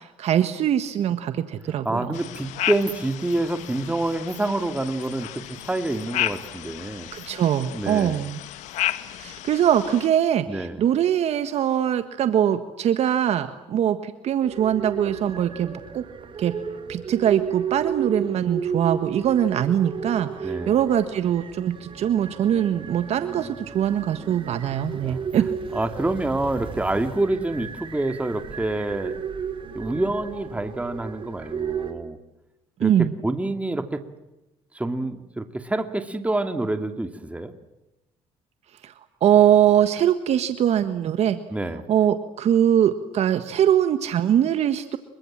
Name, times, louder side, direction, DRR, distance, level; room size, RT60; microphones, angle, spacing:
voice 1, 0.0-2.2 7.1-8.4 9.1-16.0 16.4-16.5 16.9-25.5 32.8-33.1 38.8-38.9 39.2-41.4 41.9-45.0, right 10 dB, 60° right, 10 dB, 1.6 m, -22 dB
voice 2, 1.8-7.1 7.7-8.2 10.5-10.8 20.4-20.8 25.0-25.3 25.7-29.1 29.7-32.2 32.8-34.0 34.7-37.5 41.5-41.8, right 2 dB, 10° right, 7 dB, 2.6 m, -27 dB
sound 1, 2.1-10.1, left 14 dB, 80° left, 1.8 m, -33 dB
sound 2, 14.4-31.9, right 7 dB, 45° right, 4.9 m, -34 dB
28.0 x 24.0 x 7.5 m, 0.95 s
supercardioid pair, 85°, 12 cm